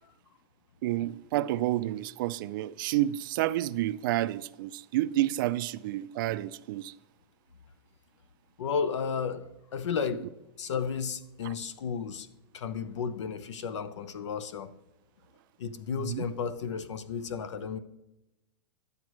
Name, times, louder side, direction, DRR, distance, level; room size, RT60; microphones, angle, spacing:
voice 1, 0.8-6.9 16.0-16.3, right 15 dB, 45° right, 0.4 m, -30 dB
voice 2, 8.6-10.3 10.6-12.3 12.5-14.7 15.6-17.8, left 6 dB, 80° left, 0.8 m, -33 dB
12.0 x 8.1 x 3.1 m
hypercardioid pair, 145°, 15 cm